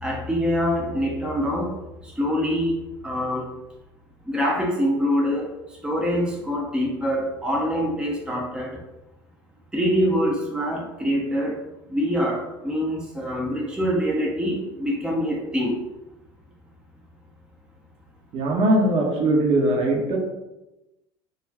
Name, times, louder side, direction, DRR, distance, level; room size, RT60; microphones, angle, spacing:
voice 1, 0.0-2.7 3.0-3.5 4.2-8.8 9.7-15.8, equal, 5° right, -2 dB, 0.6 m, -25 dB
voice 2, 18.3-20.2, right 1 dB, 45° right, -1 dB, 0.8 m, -20 dB
2.3 x 2.3 x 3.4 m, 0.97 s
hypercardioid pair, 70°, 13 cm